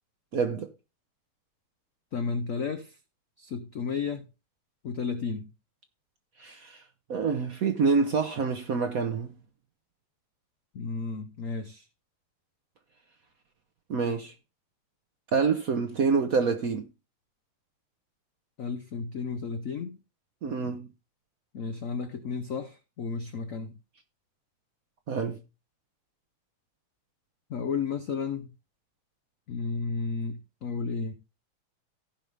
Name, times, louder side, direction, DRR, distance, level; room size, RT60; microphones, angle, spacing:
voice 1, 0.3-0.7 6.4-6.8 7.1-9.3 13.9-14.3 15.3-16.9 20.4-20.9 25.1-25.4, right 5 dB, 60° right, 0.9 m, -27 dB
voice 2, 2.1-3.0 3.4-4.3 4.8-5.5 10.7-11.9 18.6-20.0 21.5-23.8 27.5-28.5 29.5-31.1, left 5 dB, 80° left, 0.7 m, -33 dB
15.5 x 5.3 x 3.3 m
omnidirectional pair, 2.4 m